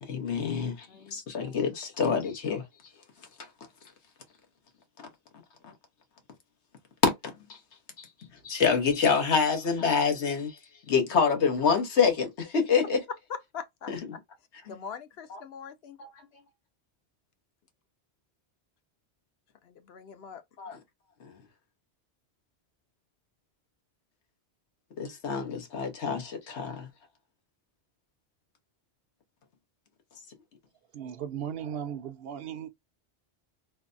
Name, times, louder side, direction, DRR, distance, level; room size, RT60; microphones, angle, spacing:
voice 1, 0.0-2.9 3.2-3.5 5.6-5.7 7.0-7.6 8.0-13.0 13.9-14.0 14.7-14.8 15.3-15.4 16.0-16.3 20.6-20.8 21.2-21.4 25.0-26.9, left 5 dB, 90° left, 1.3 m, -27 dB
voice 2, 0.9-1.2 13.1-13.9 14.7-16.0 19.6-20.4, left 6 dB, 70° left, 0.9 m, -42 dB
voice 3, 30.9-32.7, right 9 dB, 65° right, 0.7 m, -36 dB
3.3 x 2.2 x 2.4 m
omnidirectional pair, 1.1 m